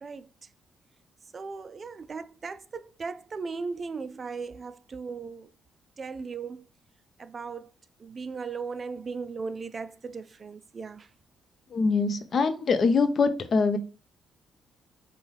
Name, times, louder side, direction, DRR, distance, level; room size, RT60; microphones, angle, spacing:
voice 1, 1.3-5.5 6.0-6.6 7.2-7.7 8.0-11.1, right 4 dB, 40° right, 0.3 m, -37 dB
voice 2, 11.7-13.8, left 4 dB, 50° left, 0.6 m, -23 dB
5.3 x 2.2 x 3.3 m
cardioid pair, 90°, 0 cm